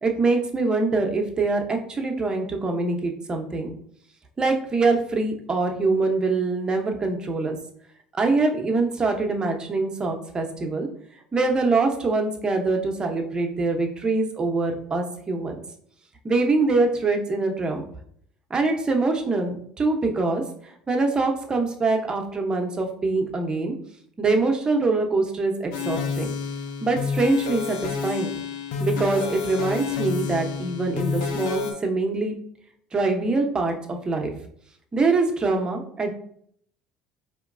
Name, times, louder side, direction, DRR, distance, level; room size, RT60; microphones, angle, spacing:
voice 1, 0.0-3.7 4.4-7.6 8.1-10.9 11.3-15.6 16.2-17.8 18.5-23.7 24.2-26.3 26.8-28.3 28.8-32.3 32.9-34.3 34.9-36.1, right 3 dB, 30° right, 3 dB, 0.8 m, -24 dB
sound 1, 25.7-31.7, left 6 dB, 80° left, 0.5 m, -29 dB
4.4 x 3.0 x 2.6 m, 0.64 s
hypercardioid pair, 75°, 3 cm